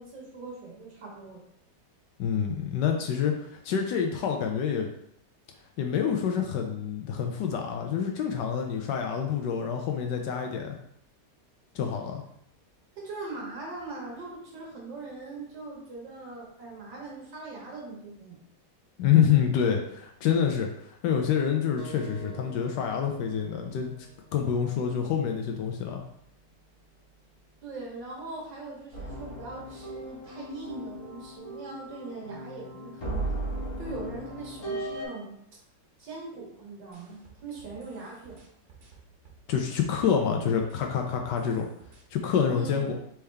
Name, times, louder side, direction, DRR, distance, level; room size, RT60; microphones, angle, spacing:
voice 1, 0.0-1.4 13.0-18.4 27.6-33.3 33.8-35.4 36.0-38.4 42.5-42.9, right 3 dB, 85° right, -3 dB, 2.0 m, -41 dB
voice 2, 2.2-4.9 5.8-10.8 11.7-12.2 19.0-23.9 24.3-26.0 39.5-41.7 42.1-43.0, left 7 dB, 80° left, 3 dB, 1.2 m, -27 dB
sound 1, 21.8-26.9, right 3 dB, 65° right, 1.4 m, -50 dB
sound 2, 28.9-35.0, right 1 dB, 40° left, 1.2 m, -36 dB
sound 3, 36.9-40.3 40.6-42.0, right 5 dB, 45° right, 1.3 m, -54 dB
4.3 x 3.5 x 3.4 m, 0.72 s
omnidirectional pair, 1.9 m